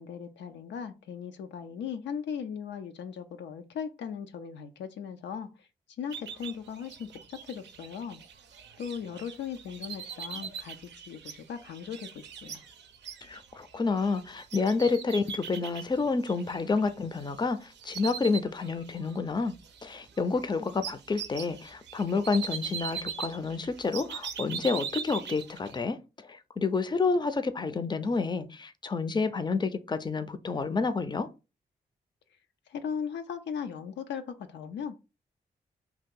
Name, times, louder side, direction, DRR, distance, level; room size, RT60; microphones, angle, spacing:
voice 1, 0.0-5.7 6.0-8.2 8.8-10.8 11.1-12.6 32.7-35.0, left 7 dB, 80° left, 0.4 m, -38 dB
sound 1, 6.1-17.4 17.7-19.2 19.5-25.8, right 7 dB, 75° right, 0.5 m, -41 dB
voice 2, 13.2-19.5 19.8-31.3, left 4 dB, 25° left, 0.5 m, -29 dB
2.8 x 2.3 x 3.6 m
supercardioid pair, 40°, 18 cm